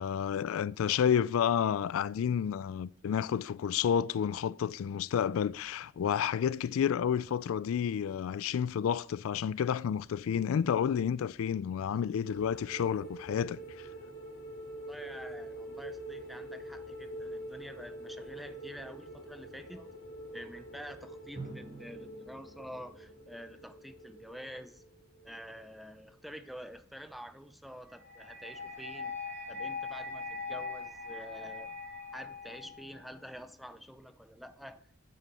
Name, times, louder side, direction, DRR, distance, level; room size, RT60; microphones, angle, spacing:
voice 1, 0.0-13.6, left 8 dB, 90° left, 0.3 m, -30 dB
sound 1, 12.2-25.6 25.9-26.2, right 1 dB, 75° left, 2.7 m, -46 dB
voice 2, 14.8-19.9 20.3-24.8 25.2-29.2 29.5-31.7 32.1-34.8, equal, ahead, 0.5 m, -48 dB
Drum, 21.4-24.0, right 3 dB, 30° right, 2.8 m, -49 dB
sound 2, 28.0-33.0, left 4 dB, 50° right, 3.6 m, -41 dB
9.2 x 9.2 x 4.3 m
head